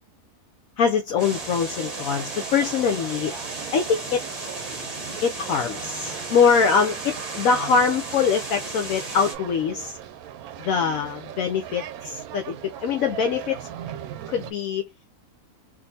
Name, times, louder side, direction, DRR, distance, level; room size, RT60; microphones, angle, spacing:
voice 1, 0.8-3.3 3.7-4.2 5.2-10.0 10.6-13.7 14.3-14.9, left 6 dB, 70° left, 1.0 m, -23 dB
sound 1, 1.2-9.3, right 2 dB, 30° right, 0.9 m, -35 dB
sound 2, 1.2-14.5, right 10 dB, 80° right, 1.0 m, -38 dB
3.6 x 2.5 x 2.7 m
omnidirectional pair, 1.6 m